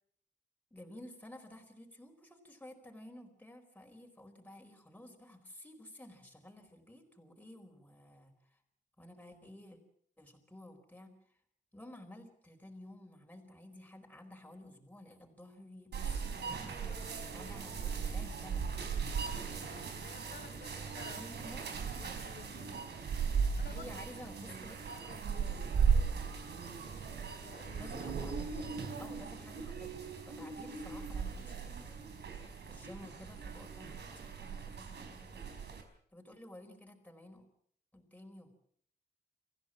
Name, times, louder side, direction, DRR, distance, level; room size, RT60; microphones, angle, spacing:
voice 1, 0.7-8.6 9.0-9.8 10.2-11.2 11.7-17.0 17.3-18.7 21.1-21.8 23.6-24.8 27.6-28.5 29.0-30.0 30.2-35.5 36.1-37.5 37.9-38.5, left 1 dB, 10° left, 2 dB, 4.6 m, -53 dB
sound 1, 15.9-35.8, right 6 dB, 75° right, 4.6 m, -37 dB
voice 2, 19.3-21.2 22.0-22.9 23.6-24.0 24.2-25.5 27.4-27.9 29.0-29.2, left 6 dB, 65° left, 3 dB, 3.8 m, -54 dB
26.5 x 15.0 x 7.6 m, 0.65 s
wide cardioid pair, 120°, 18 cm